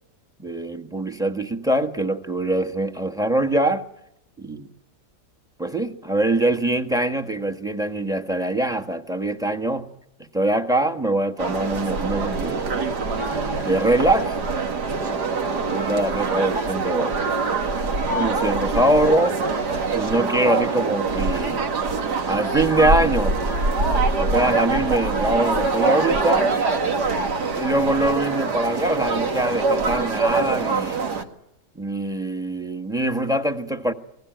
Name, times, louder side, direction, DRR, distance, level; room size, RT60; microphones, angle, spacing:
voice 1, 0.4-3.9 4.4-4.7 5.6-9.9 10.2-12.7 13.6-14.4 15.0-17.2 18.1-19.4 19.9-21.6 22.2-23.4 24.2-26.6 27.5-31.0 31.7-33.9, right 1 dB, ahead, 1.3 m, -23 dB
sound 1, 11.4-31.2, right 4 dB, 75° right, 2.4 m, -24 dB
28.0 x 20.0 x 9.2 m
omnidirectional pair, 1.8 m